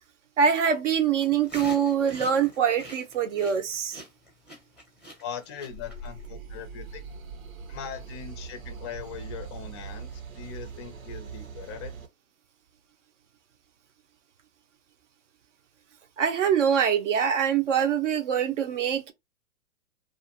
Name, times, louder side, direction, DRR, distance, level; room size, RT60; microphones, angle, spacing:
voice 1, 0.4-4.0 16.2-19.1, right 7 dB, 60° right, 0.9 m, -24 dB
sound 1, 1.2-6.3, left 1 dB, 5° right, 0.8 m, -45 dB
voice 2, 5.2-7.0 7.7-11.9, left 7 dB, 20° left, 0.4 m, -40 dB
sound 2, 5.7-12.1, right 5 dB, 80° right, 1.2 m, -41 dB
2.6 x 2.4 x 2.8 m
hypercardioid pair, 140°, 41 cm